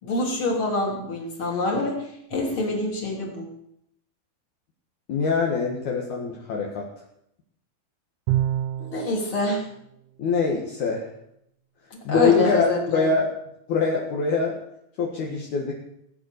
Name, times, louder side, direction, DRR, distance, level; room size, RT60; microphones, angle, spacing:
voice 1, 0.0-3.5 8.8-9.6 12.1-13.1, left 2 dB, 30° left, 0 dB, 3.4 m, -26 dB
voice 2, 5.1-6.8 10.2-11.0 12.0-13.3 13.7-14.5 15.0-15.7, left 4 dB, 55° left, -2 dB, 2.3 m, -23 dB
Bowed string instrument, 8.3-9.2, right 12 dB, 80° right, 2.8 m, -25 dB
17.5 x 9.9 x 6.8 m, 0.76 s
omnidirectional pair, 5.9 m